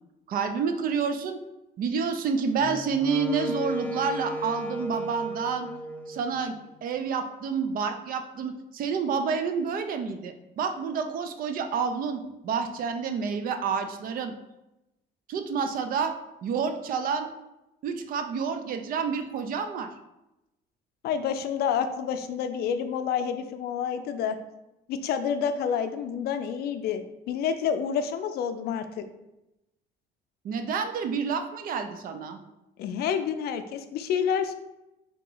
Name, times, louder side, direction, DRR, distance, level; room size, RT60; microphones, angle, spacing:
voice 1, 0.3-1.4 1.8-5.7 6.1-14.3 15.3-16.1 16.4-17.3 17.8-19.9 30.4-32.4, right 5 dB, 55° right, 7 dB, 0.5 m, -29 dB
Wind instrument woodwind instrument, 2.6-6.8, equal, 10° left, 0.4 m, -35 dB
voice 2, 21.0-24.4 24.9-29.0 32.8-34.5, left 7 dB, 70° left, 9 dB, 0.4 m, -28 dB
3.6 x 2.9 x 3.8 m, 0.93 s
cardioid pair, 110°, 17 cm